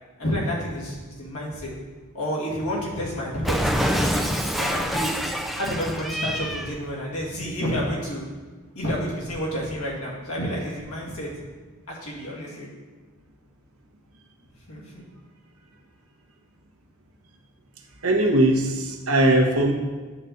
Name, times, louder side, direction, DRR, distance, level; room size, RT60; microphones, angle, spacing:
voice 1, 0.2-1.7 2.1-4.3 4.5-5.2 5.6-8.2 8.7-11.3 11.9-12.7 14.7-15.1, equal, 70° left, -4 dB, 2.2 m, -30 dB
Cat, 3.4-6.7, equal, ahead, 0.4 m, -26 dB
voice 2, 18.0-19.7, right 1 dB, 70° right, 1 dB, 1.2 m, -20 dB
8.5 x 4.1 x 6.5 m, 1.4 s
head